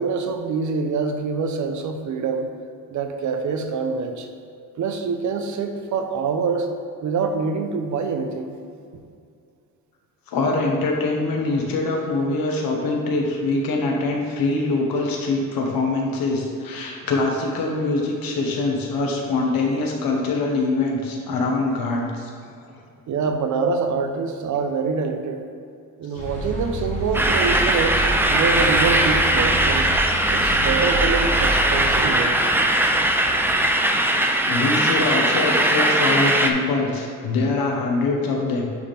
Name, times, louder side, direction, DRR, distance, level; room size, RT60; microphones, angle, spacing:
voice 1, 0.0-2.5 2.9-4.3 4.8-6.7 7.0-8.6 23.1-25.4 26.0-29.9 30.3-32.4, right 5 dB, 55° right, 6 dB, 0.7 m, -25 dB
voice 2, 10.3-22.3 26.1-26.2 34.5-38.7, left 3 dB, 85° left, 0 dB, 1.3 m, -23 dB
sound 1, 26.2-31.9, right 1 dB, 20° left, 1.2 m, -29 dB
sound 2, 27.1-36.5, right 1 dB, 5° right, 0.3 m, -20 dB
9.5 x 4.2 x 3.5 m, 2.3 s
cardioid pair, 145°, 34 cm